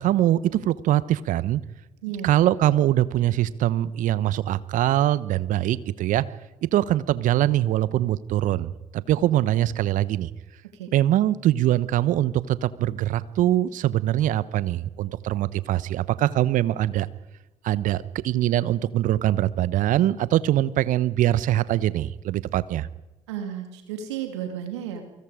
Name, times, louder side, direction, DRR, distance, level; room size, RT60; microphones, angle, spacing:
voice 1, 0.0-1.6 2.2-6.2 6.7-10.3 10.9-17.1 17.6-22.9, right 13 dB, 65° right, 17 dB, 1.0 m, -23 dB
voice 2, 2.0-2.4 10.6-10.9 23.3-25.0, right 9 dB, 80° right, 5 dB, 2.7 m, -33 dB
28.5 x 24.5 x 5.1 m, 0.99 s
hypercardioid pair, 45°, 15 cm